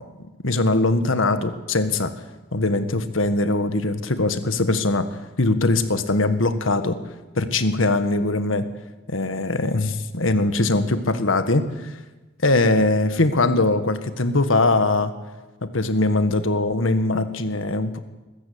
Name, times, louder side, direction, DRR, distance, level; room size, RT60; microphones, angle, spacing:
voice 1, 0.4-2.1 2.5-5.1 5.4-7.0 7.3-8.7 9.1-11.6 12.4-15.1 15.6-18.0, left 2 dB, 90° left, 10 dB, 1.6 m, -21 dB
22.5 x 13.5 x 8.6 m, 1.2 s
head